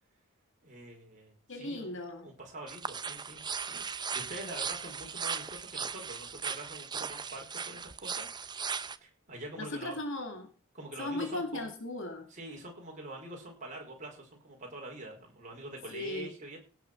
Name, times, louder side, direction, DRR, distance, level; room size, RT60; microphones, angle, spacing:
voice 1, 0.6-1.9 2.2-3.4 3.7-8.6 9.0-10.0 10.7-11.7 12.3-16.6, right 1 dB, 35° right, 0 dB, 4.6 m, -45 dB
voice 2, 1.5-2.3 9.6-10.5 11.0-12.3 15.9-16.3, left 2 dB, 65° left, 4 dB, 2.5 m, -37 dB
sound 1, 2.7-9.0, right 6 dB, 20° right, 0.6 m, -38 dB
17.0 x 5.9 x 6.1 m, 0.39 s
head